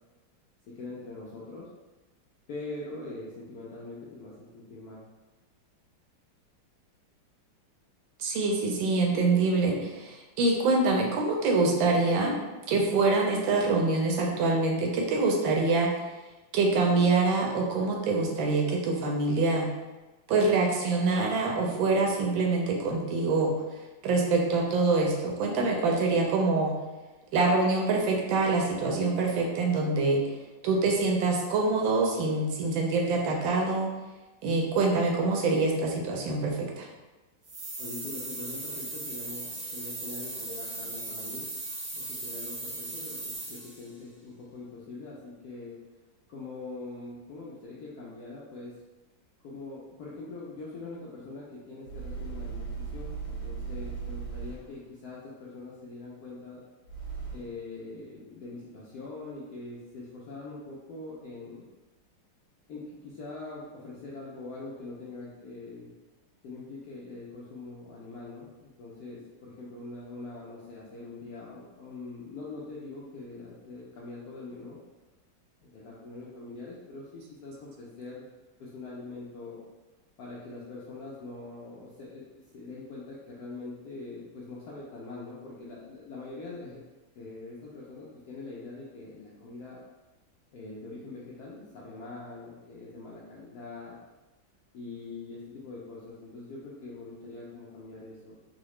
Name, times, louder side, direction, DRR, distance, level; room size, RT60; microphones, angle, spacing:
voice 1, 0.8-1.7 2.5-5.0 37.8-41.5 41.9-45.8 46.3-48.8 49.4-56.6 57.3-61.7 62.7-65.9 66.4-74.8 75.6-78.2 78.6-79.6 80.2-82.3 82.5-86.8 87.1-89.8 90.5-93.9 94.7-98.4, left 3 dB, 75° left, -6 dB, 0.9 m, -43 dB
voice 2, 8.2-12.3 12.7-16.1 16.5-19.7 20.3-23.5 24.0-26.7 27.3-33.9 34.4-36.9, right 3 dB, 80° right, 0 dB, 1.3 m, -25 dB
sound 1, 37.4-43.9, right 2 dB, 50° right, 0.9 m, -38 dB
sound 2, 51.8-54.9 56.8-57.7, right 5 dB, 90° left, 1.6 m, -37 dB
3.8 x 2.1 x 3.1 m, 1.1 s
omnidirectional pair, 2.2 m